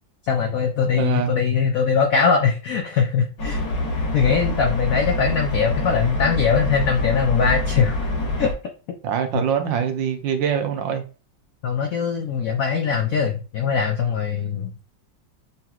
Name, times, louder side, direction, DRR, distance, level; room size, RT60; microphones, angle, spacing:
voice 1, 0.2-3.6 4.0-8.0 8.4-8.5 9.3-9.4 11.6-14.7, left 6 dB, 90° left, 0.7 m, -21 dB
voice 2, 0.9-1.4 4.9-5.0 9.0-11.0, right 8 dB, 70° right, 1.3 m, -24 dB
sound 1, 3.4-8.5, left 2 dB, 50° left, 1.6 m, -25 dB
5.6 x 3.0 x 2.4 m
omnidirectional pair, 2.2 m